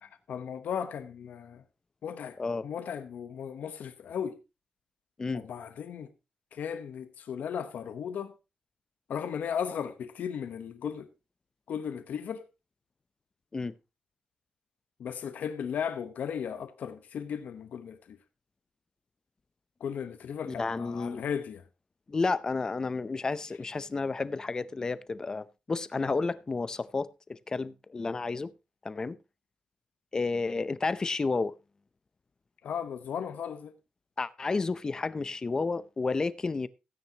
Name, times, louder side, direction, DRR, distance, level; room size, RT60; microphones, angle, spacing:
voice 1, 0.0-1.6 2.0-2.4 2.6-4.4 5.3-6.1 6.5-8.3 9.1-11.1 11.7-12.5 15.0-18.2 19.8-21.6 32.6-33.7, left 7 dB, 85° left, 1.0 m, -36 dB
voice 2, 2.4-2.7 5.2-5.4 13.5-13.7 20.4-21.2 22.1-28.5 28.8-29.2 30.1-31.5 34.2-36.7, left 3 dB, 25° left, 0.6 m, -31 dB
16.0 x 9.6 x 2.9 m
wide cardioid pair, 175°, 3 cm